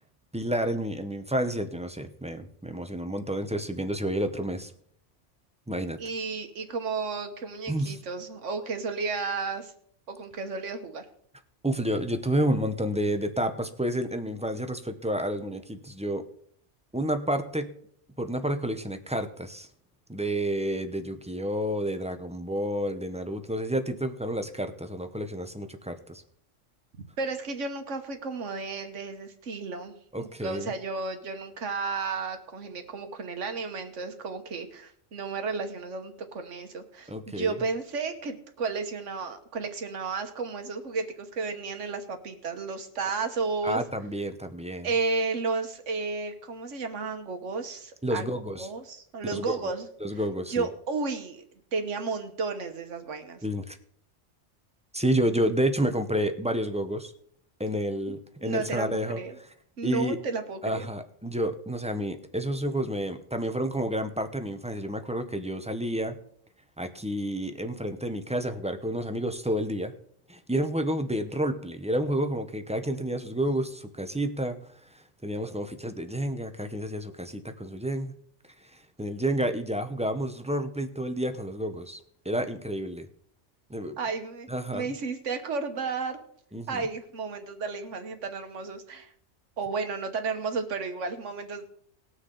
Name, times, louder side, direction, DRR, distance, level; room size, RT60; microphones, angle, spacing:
voice 1, 0.3-4.7 5.7-6.0 7.7-8.0 11.6-16.2 16.9-17.7 18.2-19.7 20.1-26.2 30.1-30.7 37.1-37.6 43.6-44.9 48.0-48.7 49.3-49.5 50.0-50.7 53.4-53.8 54.9-57.1 57.6-59.2 59.8-60.2 60.6-66.2 66.8-69.9 70.3-78.1 78.6-83.1 83.7-84.0 84.5-84.9 86.5-86.8, right 1 dB, 10° right, 8 dB, 0.5 m, -30 dB
voice 2, 6.0-9.7 10.1-11.0 27.2-43.8 44.8-48.2 48.6-49.9 50.5-51.4 51.7-53.4 58.4-58.9 59.2-59.3 59.8-60.9 84.0-84.5 84.7-86.2 86.7-89.1 89.6-91.6, right 4 dB, 75° right, 6 dB, 1.5 m, -33 dB
20.0 x 6.6 x 3.8 m, 0.64 s
omnidirectional pair, 1.3 m